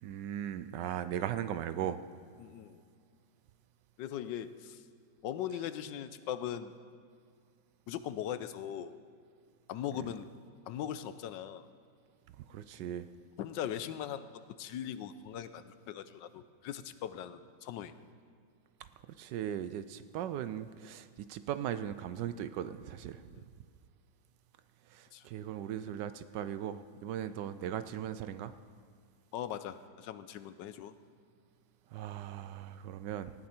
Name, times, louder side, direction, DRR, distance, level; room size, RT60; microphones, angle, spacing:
voice 1, 0.0-2.0 9.9-10.0 12.5-13.1 19.2-23.2 24.9-28.5 31.9-33.3, right 10 dB, 75° right, 12 dB, 1.1 m, -38 dB
voice 2, 2.4-2.8 4.0-4.8 5.2-6.7 7.9-8.9 9.7-10.3 10.7-11.6 12.8-12.9 13.4-17.9 23.3-23.4 25.1-25.3 29.3-30.9, left 10 dB, 75° left, 12 dB, 1.3 m, -40 dB
18.5 x 13.5 x 4.4 m, 2.2 s
omnidirectional pair, 2.1 m